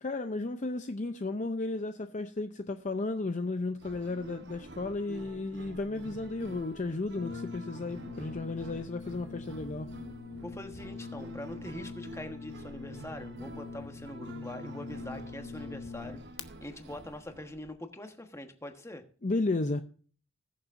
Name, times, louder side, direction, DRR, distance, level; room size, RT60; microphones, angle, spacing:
voice 1, 0.0-9.9 19.2-19.8, left 2 dB, 35° left, 0.6 m, -34 dB
sound 1, 3.8-17.7, right 2 dB, 55° right, 1.0 m, -48 dB
Brass instrument, 7.1-16.5, left 4 dB, 70° left, 1.1 m, -44 dB
voice 2, 10.4-16.2 16.6-19.0, left 1 dB, 15° left, 1.3 m, -43 dB
20.5 x 7.1 x 2.6 m
head